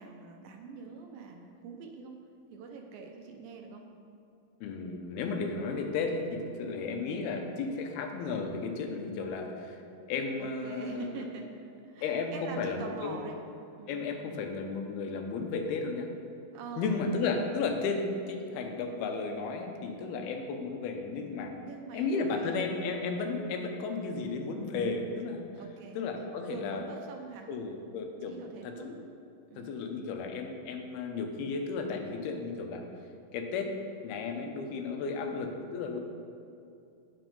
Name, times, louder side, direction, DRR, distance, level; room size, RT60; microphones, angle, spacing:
voice 1, 0.0-2.2 2.5-3.9 6.7-7.0 10.4-13.4 13.8-14.1 16.5-17.0 21.6-22.6 25.6-26.0 26.4-27.5 28.3-28.9 29.5-29.7 35.2-35.4, right 5 dB, 75° right, 2 dB, 2.5 m, -44 dB
voice 2, 4.6-9.8 10.1-11.1 12.0-13.2 13.9-16.1 16.8-21.5 21.9-25.4 26.0-26.8 27.5-28.4 28.6-29.0 29.6-32.8 33.3-33.8 34.0-36.0, left 4 dB, 85° left, 4 dB, 2.8 m, -34 dB
9.2 x 8.1 x 5.4 m, 2.5 s
omnidirectional pair, 4.4 m